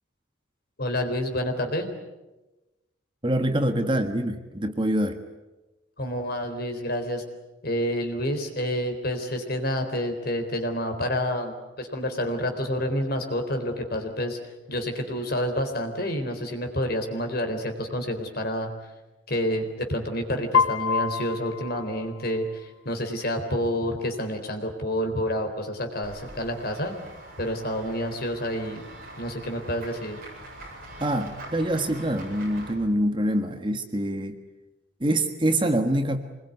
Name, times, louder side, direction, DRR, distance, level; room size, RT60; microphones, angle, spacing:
voice 1, 0.8-1.9 6.0-7.2 7.6-14.4 14.7-18.7 19.3-26.9 27.4-28.8 29.2-30.2, equal, 50° left, 5 dB, 3.9 m, -28 dB
voice 2, 3.2-5.2 31.0-34.4 35.0-36.2, right 1 dB, 25° right, 7 dB, 1.5 m, -25 dB
Piano, 20.5-22.6, left 6 dB, 90° left, 1.2 m, -26 dB
Run / Walk footsteps / Bell, 26.0-32.7, right 1 dB, 45° right, 7.9 m, -44 dB
26.0 x 21.5 x 9.4 m, 1.1 s
head